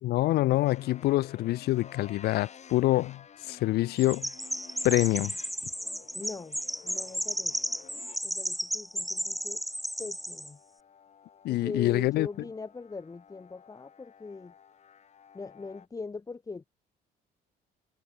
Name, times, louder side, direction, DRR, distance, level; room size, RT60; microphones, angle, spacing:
voice 1, 0.0-4.3 4.8-5.3 11.4-12.3, left 17 dB, 70° left, 0.6 m, -26 dB
sound 1, 0.6-15.9, left 7 dB, 40° left, 3.8 m, -53 dB
Chirp tweet, 4.0-10.5, equal, ahead, 0.6 m, -34 dB
voice 2, 6.1-6.6 6.8-7.5 8.2-9.6 10.0-10.6 11.5-14.5 15.3-16.7, left 4 dB, 20° left, 1.6 m, -41 dB
cardioid pair, 110°, 17 cm